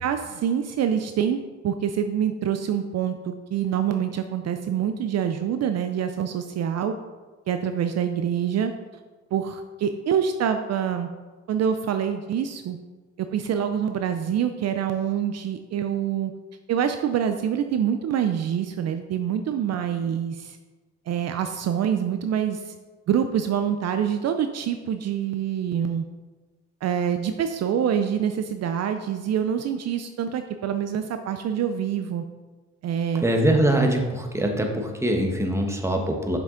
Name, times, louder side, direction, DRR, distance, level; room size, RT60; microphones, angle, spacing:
voice 1, 0.0-6.9 7.5-8.7 9.3-11.1 11.5-12.8 13.2-16.3 16.7-20.6 21.1-22.7 23.1-26.1 26.8-32.2 32.8-33.2, right 8 dB, 60° right, 8 dB, 0.5 m, -26 dB
voice 2, 33.2-36.4, right 1 dB, 10° right, 2 dB, 1.2 m, -23 dB
6.9 x 5.9 x 3.8 m, 1.3 s
cardioid pair, 90°, 30 cm